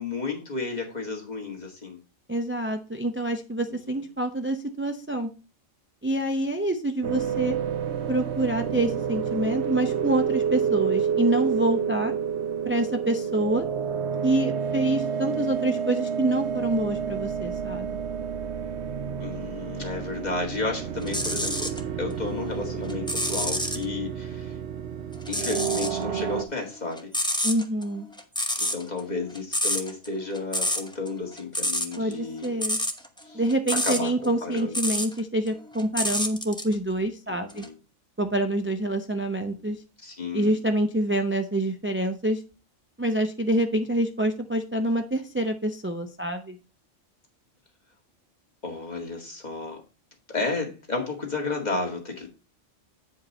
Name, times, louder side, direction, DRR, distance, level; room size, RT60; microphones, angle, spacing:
voice 1, 0.0-2.0 3.9-4.0 19.2-21.7 22.0-24.5 25.3-27.1 28.6-32.6 33.2-33.4 33.8-34.8 37.3-37.7 40.0-40.5 48.6-49.8 50.3-52.3, left 3 dB, 35° left, -1 dB, 2.1 m, -32 dB
voice 2, 2.3-5.3 6.0-7.6 8.1-12.1 12.6-13.7 14.2-18.0 27.4-28.1 32.0-32.8 33.3-37.7 38.2-39.8 40.3-42.4 43.0-46.6, right 1 dB, 15° right, 5 dB, 0.4 m, -26 dB
sound 1, 7.0-26.4, right 7 dB, 65° right, 1.0 m, -29 dB
sound 2, 21.0-21.8 22.3-23.8 25.2-26.0 26.3-35.2 35.5-36.7 37.5-37.7, left 1 dB, 5° left, 0.8 m, -29 dB
8.7 x 5.2 x 4.2 m, 0.33 s
omnidirectional pair, 1.3 m